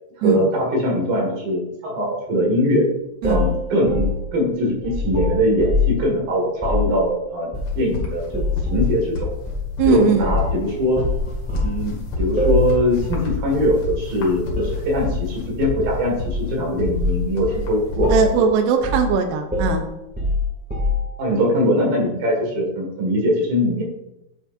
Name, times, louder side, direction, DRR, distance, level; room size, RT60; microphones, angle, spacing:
voice 1, 0.2-2.9 3.2-7.5 7.8-9.3 9.9-11.1 11.6-18.2 21.2-23.8, equal, 65° right, -1 dB, 3.6 m, -21 dB
sound 1, 3.2-6.0 6.5-6.9 7.5-7.9 8.3-8.9 9.5-9.6 10.2-10.5 10.9-11.7 12.4-12.7 13.0-13.2 13.5-13.8 14.5-15.2 15.8-16.5 16.9-17.2 17.5-17.7 18.0-18.4 18.8-19.1 19.5-21.2, left 3 dB, 5° right, 0.6 m, -23 dB
sound 2, 7.5-18.5, left 4 dB, 75° left, 3.7 m, -30 dB
voice 2, 9.8-10.3 18.1-19.8, right 6 dB, 85° right, 5 dB, 2.9 m, -19 dB
9.8 x 7.3 x 2.6 m, 0.88 s
omnidirectional pair, 4.8 m